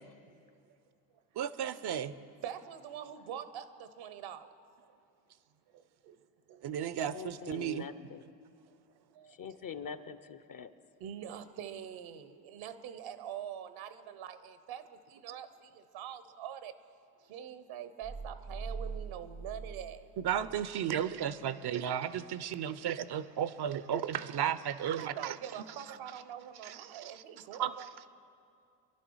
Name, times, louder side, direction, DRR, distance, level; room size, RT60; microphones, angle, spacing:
voice 1, 1.4-2.2 6.6-7.9 20.2-25.3 26.6-27.1 27.6-27.7, right 9 dB, 55° right, 15 dB, 0.8 m, -34 dB
voice 2, 2.4-4.5 5.7-6.2 6.5-6.8 8.7-9.6 11.0-20.1 24.9-27.9, right 9 dB, 70° right, 12 dB, 1.1 m, -45 dB
voice 3, 7.0-8.2 9.3-10.7, left 7 dB, 40° left, 12 dB, 0.9 m, -44 dB
sound 1, 18.0-20.7, right 4 dB, 10° right, 0.3 m, -42 dB
24.0 x 11.5 x 4.8 m, 2.4 s
hypercardioid pair, 55°, 49 cm